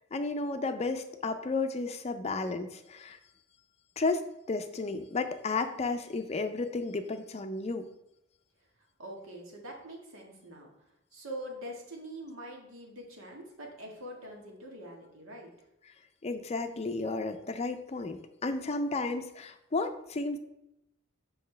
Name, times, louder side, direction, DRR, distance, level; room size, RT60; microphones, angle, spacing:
voice 1, 0.1-3.2 4.0-7.9 16.2-20.4, left 3 dB, 30° left, 8 dB, 0.5 m, -33 dB
voice 2, 9.0-10.7 11.1-15.5, right 1 dB, 90° right, 0 dB, 1.7 m, -44 dB
6.7 x 5.6 x 3.3 m, 0.85 s
head